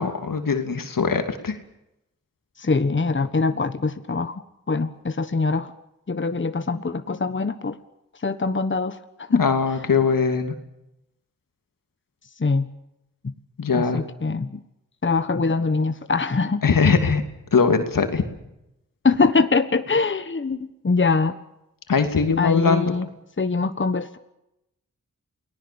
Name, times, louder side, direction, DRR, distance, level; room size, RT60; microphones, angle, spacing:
voice 1, 0.0-1.6 9.4-10.5 13.6-14.0 16.6-17.2 17.5-18.2 21.9-22.9, left 5 dB, 80° left, 7 dB, 2.8 m, -21 dB
voice 2, 2.6-4.4 4.7-5.7 6.1-7.8 8.2-9.0 9.3-9.4 12.4-12.7 13.2-13.3 13.7-14.6 15.0-16.6 19.0-21.3 22.4-23.1 23.4-24.2, left 4 dB, 35° left, 10 dB, 1.3 m, -23 dB
29.0 x 19.5 x 7.1 m, 0.87 s
cardioid pair, 55°, 33 cm